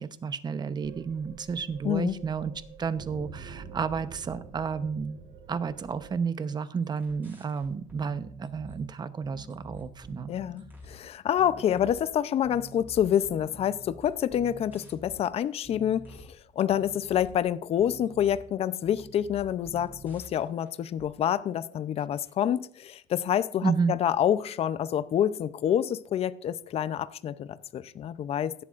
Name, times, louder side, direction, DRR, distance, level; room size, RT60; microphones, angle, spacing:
voice 1, 0.0-2.5 2.8-5.2 5.5-10.3 23.6-24.0, right 5 dB, 30° right, 12 dB, 0.9 m, -31 dB
sound 1, 0.8-6.2, right 6 dB, 70° right, 1.5 m, -46 dB
voice 2, 1.8-2.2 10.3-28.5, left 10 dB, 45° left, 15 dB, 0.6 m, -27 dB
sound 2, 6.8-8.8 9.2-11.0 11.4-12.0 12.4-15.2 15.6-16.3 16.7-17.4 17.8-18.5 18.8-20.7 21.0-21.1, right 1 dB, 10° right, 5.4 m, -48 dB
15.5 x 11.5 x 2.5 m, 0.63 s
supercardioid pair, 100°, 15 cm